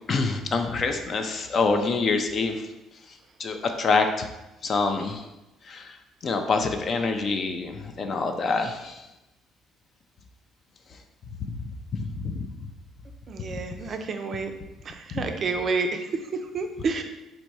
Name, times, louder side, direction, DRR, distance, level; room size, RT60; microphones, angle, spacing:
voice 1, 0.1-2.7 3.1-4.3 4.6-5.2 5.6-6.0 6.2-9.0 11.4-12.4 13.5-13.6 15.1-15.2, left 4 dB, 35° left, 6 dB, 0.4 m, -26 dB
voice 2, 13.3-14.5 14.8-17.0, right 4 dB, 35° right, 5 dB, 0.4 m, -29 dB
4.1 x 2.6 x 4.6 m, 0.98 s
cardioid pair, 155°, 0 cm